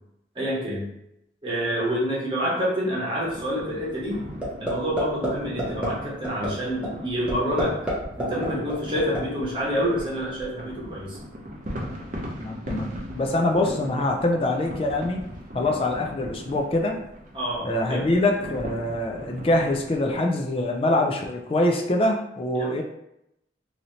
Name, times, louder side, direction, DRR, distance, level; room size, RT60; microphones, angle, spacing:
voice 1, 0.3-0.9 1.4-4.2 4.6-7.7 8.2-11.2 17.3-18.1 22.6-22.7, equal, 25° right, -7 dB, 1.0 m, -27 dB
sound 1, 3.2-20.2, equal, 45° right, 0.5 m, -39 dB
sound 2, 4.4-4.7 5.0-5.3 5.6-5.9 6.2-6.5 6.8-6.9 7.3-7.9 8.2-9.2, right 1 dB, 5° right, 0.7 m, -27 dB
voice 2, 12.4-15.2 15.5-17.0 17.6-22.8, left 1 dB, 30° left, 2 dB, 0.4 m, -24 dB
3.1 x 2.7 x 2.7 m, 0.81 s
head